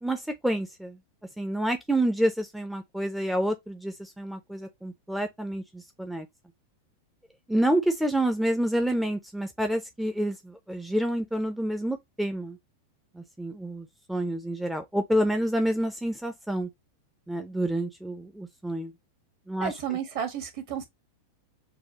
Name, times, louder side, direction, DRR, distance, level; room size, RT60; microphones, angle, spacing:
voice 1, 0.0-1.0 1.4-6.3 7.5-12.6 13.1-16.7 17.3-18.9 19.5-20.0, right 1 dB, 5° right, 0.6 m, -28 dB
voice 2, 19.6-20.8, right 8 dB, 50° right, 1.5 m, -32 dB
6.7 x 2.3 x 2.9 m
figure-of-eight pair, 90°, 0 cm